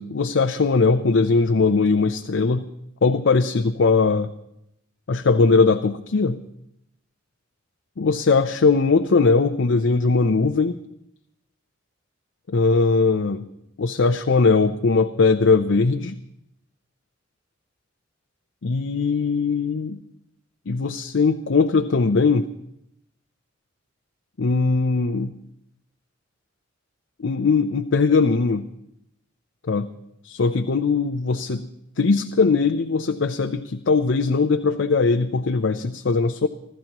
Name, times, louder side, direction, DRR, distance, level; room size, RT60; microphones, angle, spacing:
voice 1, 0.0-2.6 3.0-4.3 5.1-6.4 8.0-10.8 12.5-13.4 13.8-16.2 18.6-20.0 20.7-22.5 24.4-25.4 27.2-28.7 29.7-29.9 30.2-31.7 32.0-36.5, left 4 dB, 70° left, 6 dB, 0.6 m, -20 dB
27.0 x 14.0 x 3.0 m, 0.80 s
head